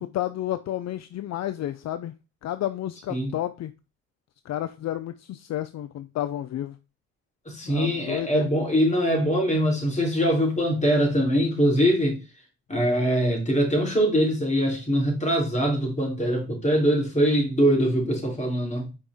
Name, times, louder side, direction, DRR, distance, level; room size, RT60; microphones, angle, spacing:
voice 1, 0.0-2.1 2.4-3.7 4.5-6.8 7.6-8.5, left 12 dB, 60° left, 0.5 m, -31 dB
voice 2, 7.5-12.2 12.7-18.9, equal, 25° left, 3.5 m, -23 dB
5.3 x 5.2 x 3.5 m
cardioid pair, 90°, 30 cm